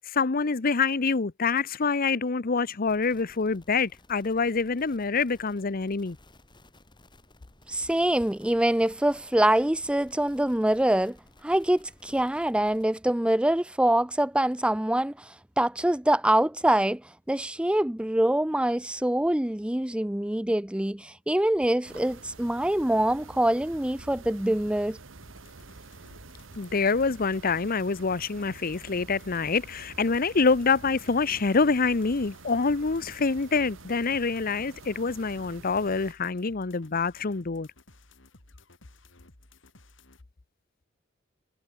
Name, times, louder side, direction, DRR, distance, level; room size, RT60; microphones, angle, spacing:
voice 1, 0.1-6.2 26.6-37.7, left 4 dB, 50° left, 0.8 m, -26 dB
sound 1, 2.8-12.8, left 1 dB, 25° left, 6.9 m, -57 dB
voice 2, 7.7-11.2 11.4-25.0, right 1 dB, 5° right, 0.5 m, -25 dB
sound 2, 21.8-36.1, right 3 dB, 75° right, 1.5 m, -48 dB
sound 3, 25.2-40.2, left 2 dB, 70° left, 3.9 m, -56 dB
head